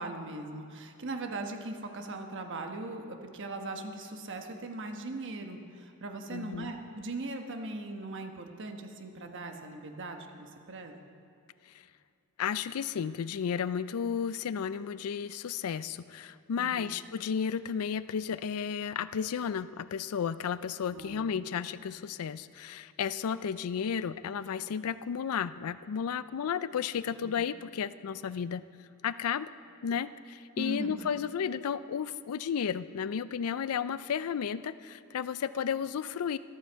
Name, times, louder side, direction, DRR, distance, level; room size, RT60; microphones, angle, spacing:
voice 1, 0.0-11.1 16.6-17.0 20.9-21.5 27.2-27.3 30.6-31.0, right 2 dB, 60° right, 4 dB, 1.2 m, -39 dB
voice 2, 6.3-6.7 11.7-11.8 12.4-28.6 29.0-29.5 29.8-36.4, left 7 dB, 80° left, 15 dB, 0.4 m, -33 dB
13.5 x 13.0 x 4.6 m, 2.5 s
head